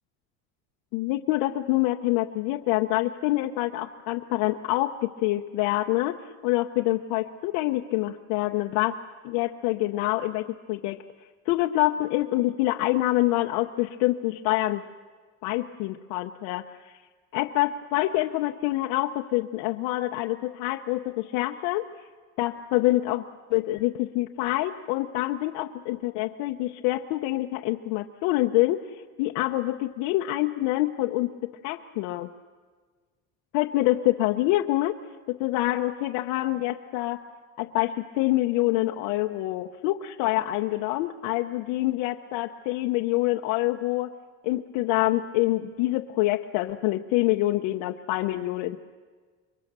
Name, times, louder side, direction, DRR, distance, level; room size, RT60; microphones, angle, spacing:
voice 1, 0.9-6.1 6.4-9.0 9.2-11.0 11.5-14.8 15.4-16.7 17.3-21.9 22.4-32.3 33.5-35.0 35.3-37.2 37.6-44.1 44.4-48.9, left 17 dB, 75° left, 3 dB, 0.8 m, -26 dB
27.5 x 23.0 x 6.8 m, 1.5 s
cardioid pair, 170°, 35 cm